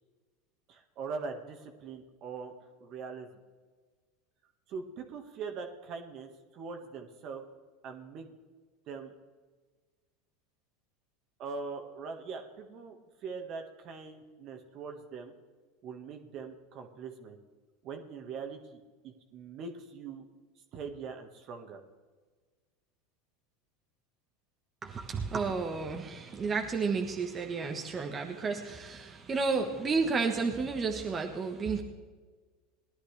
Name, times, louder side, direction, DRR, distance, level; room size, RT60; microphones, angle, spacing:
voice 1, 0.7-3.3 4.7-7.4 7.8-8.4 8.9-9.1 11.4-15.3 15.8-17.4 17.8-20.3 20.7-21.8, right 5 dB, 50° right, 4 dB, 1.6 m, -42 dB
voice 2, 24.8-31.8, right 4 dB, 25° right, 2 dB, 1.3 m, -32 dB
19.0 x 11.0 x 3.3 m, 1.4 s
hypercardioid pair, 100°, 0 cm